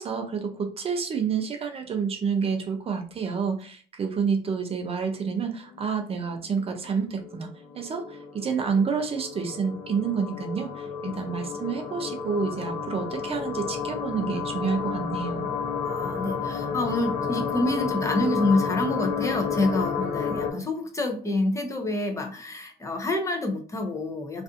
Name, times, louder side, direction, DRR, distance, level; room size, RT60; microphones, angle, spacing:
voice 1, 0.0-7.5 7.7-15.5, right 6 dB, 35° right, 5 dB, 0.4 m, -29 dB
sound 1, 5.2-5.8 6.1-6.2 6.4-20.5, left 6 dB, 65° left, 0.6 m, -31 dB
voice 2, 15.8-24.4, left 2 dB, 20° left, 3 dB, 0.5 m, -27 dB
2.5 x 2.4 x 2.4 m, 0.42 s
cardioid pair, 110°, 17 cm